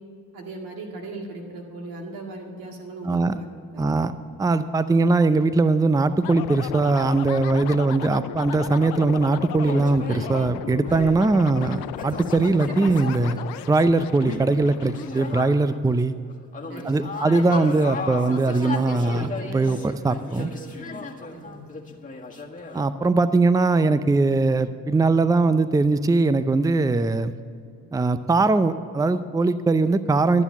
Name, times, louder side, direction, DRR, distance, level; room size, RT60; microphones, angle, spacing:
voice 1, 0.3-3.5 3.7-4.0 16.7-17.3 18.6-19.2 19.7-19.8 20.4-20.9 21.3-21.9, right 2 dB, 80° right, 1 dB, 2.0 m, -39 dB
voice 2, 3.8-4.1 4.4-13.4 13.7-16.1 16.8-20.5 22.7-27.3 27.9-30.4, right 3 dB, 10° right, 13 dB, 0.5 m, -21 dB
sound 1, 6.2-15.8, left 13 dB, 90° left, 0.5 m, -36 dB
sound 2, 9.6-10.5 10.9-16.0 16.3-22.8, left 3 dB, 25° left, 1.7 m, -35 dB
13.0 x 7.3 x 7.2 m, 2.3 s
supercardioid pair, 50°, 34 cm